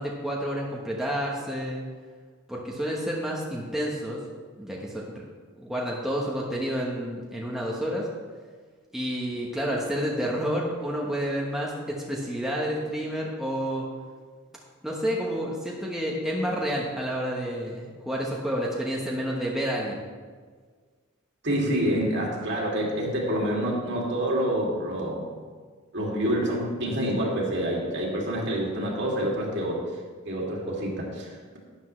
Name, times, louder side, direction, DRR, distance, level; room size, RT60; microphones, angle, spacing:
voice 1, 0.0-1.8 2.5-4.2 4.6-5.2 5.6-8.1 8.9-13.9 14.8-20.0, equal, ahead, -4 dB, 1.1 m, -29 dB
voice 2, 21.4-25.3 25.9-29.8 30.2-31.6, equal, 55° right, -2 dB, 2.4 m, -27 dB
12.0 x 10.0 x 3.2 m, 1.5 s
head